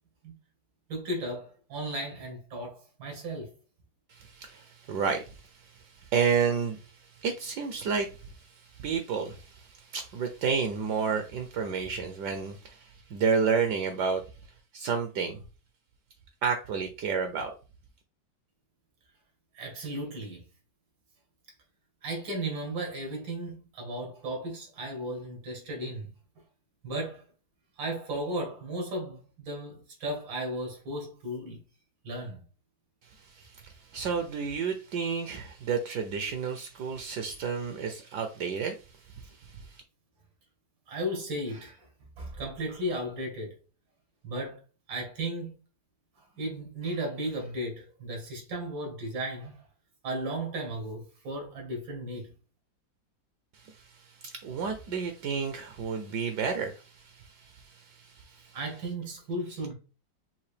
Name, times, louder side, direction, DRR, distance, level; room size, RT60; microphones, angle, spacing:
voice 1, 0.9-3.5 19.5-20.4 22.0-26.1 26.8-27.2 27.8-31.6 32.0-32.4 40.9-41.9 42.2-43.5 44.2-44.6 44.9-45.5 46.2-49.6 50.0-52.3 58.5-59.7, right 1 dB, 85° right, 2.4 m, -35 dB
voice 2, 4.1-14.2 14.7-15.4 16.4-17.5 33.2-38.8 39.2-39.8 53.5-58.6, right 6 dB, 70° right, 1.1 m, -31 dB
5.7 x 2.6 x 3.2 m
omnidirectional pair, 2.0 m